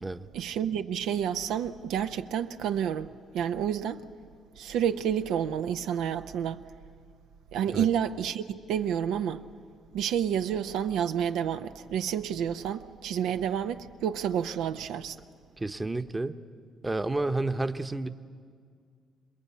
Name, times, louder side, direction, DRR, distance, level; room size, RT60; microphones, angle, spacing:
voice 1, 0.3-4.0 4.6-6.6 7.5-9.4 9.9-15.2, right 9 dB, 90° right, 0.7 m, -29 dB
voice 2, 15.6-16.3 16.8-18.1, right 2 dB, 20° right, 0.9 m, -30 dB
27.5 x 21.0 x 8.4 m
cardioid pair, 90°, 0 cm